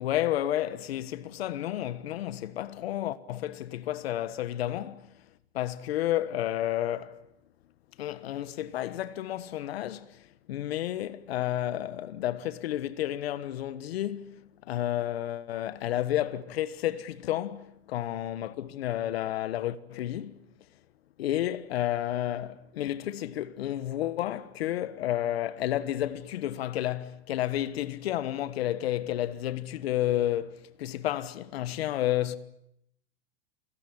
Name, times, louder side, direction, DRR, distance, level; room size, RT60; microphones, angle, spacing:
voice 1, 0.0-5.1 5.5-7.1 8.0-10.2 10.5-14.4 14.7-20.4 21.2-32.4, left 12 dB, 75° left, 1.4 m, -31 dB
28.0 x 17.5 x 9.9 m
supercardioid pair, 145°, 31 cm